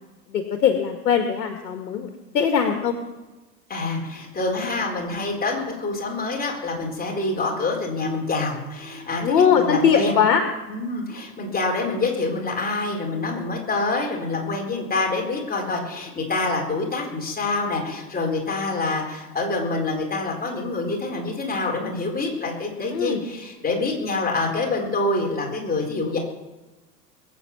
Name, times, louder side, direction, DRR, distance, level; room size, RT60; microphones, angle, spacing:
voice 1, 0.3-2.1 2.3-3.0 9.2-10.4 22.9-23.2, left 7 dB, 70° left, 5 dB, 1.8 m, -20 dB
voice 2, 3.7-10.2 10.7-26.2, left 3 dB, 20° left, 0 dB, 4.4 m, -26 dB
21.5 x 8.5 x 6.0 m, 1.1 s
figure-of-eight pair, 85°, 50 cm